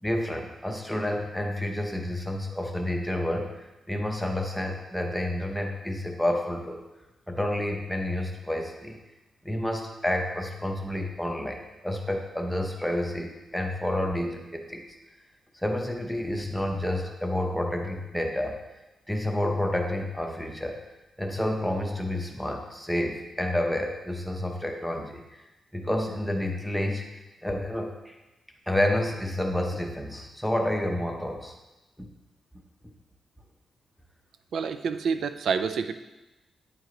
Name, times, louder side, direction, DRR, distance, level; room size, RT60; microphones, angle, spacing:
voice 1, 0.0-6.8 7.3-9.0 9.4-14.8 15.5-18.6 19.1-20.8 21.2-25.4 25.7-28.2 28.7-31.6 32.0-32.1, left 1 dB, ahead, 1 dB, 0.7 m, -29 dB
voice 2, 34.5-35.9, right 6 dB, 65° right, 10 dB, 0.4 m, -28 dB
9.2 x 4.8 x 3.8 m, 1.0 s
wide cardioid pair, 180°, 0 cm